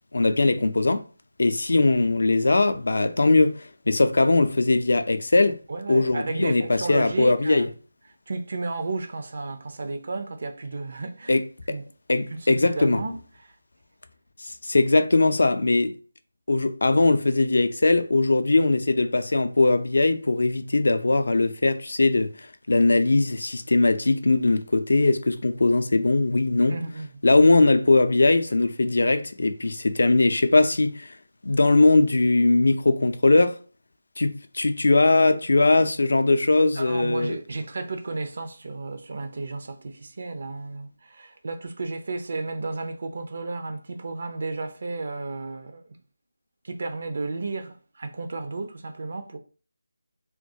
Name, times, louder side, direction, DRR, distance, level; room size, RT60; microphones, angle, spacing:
voice 1, 0.1-1.0 1.4-5.6 5.9-7.7 11.3-11.4 11.7-11.8 12.1-13.0 14.4-15.9 16.5-22.3 22.7-26.7 27.2-31.2 31.4-33.6 34.2-37.4, left 2 dB, 65° left, 0.4 m, -20 dB
voice 2, 5.7-7.7 8.3-11.4 11.7-11.8 12.3-13.6 26.7-27.1 36.8-46.0 46.6-49.4, right 3 dB, 55° right, 0.4 m, -33 dB
2.2 x 2.1 x 2.7 m
figure-of-eight pair, 160°, 0 cm